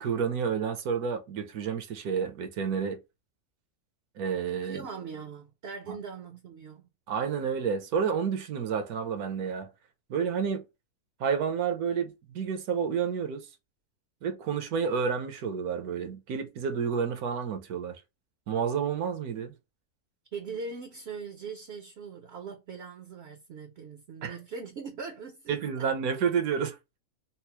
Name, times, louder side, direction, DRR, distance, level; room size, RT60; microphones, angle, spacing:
voice 1, 0.0-3.0 4.2-4.8 5.9-6.0 7.1-9.7 10.1-10.6 11.2-13.5 14.2-18.0 18.5-19.5 24.2-24.4 25.5-27.0, right 6 dB, 75° right, 1.2 m, -30 dB
voice 2, 4.6-6.8 20.3-25.6, right 5 dB, 60° right, 0.7 m, -41 dB
4.3 x 2.0 x 2.8 m
omnidirectional pair, 1.6 m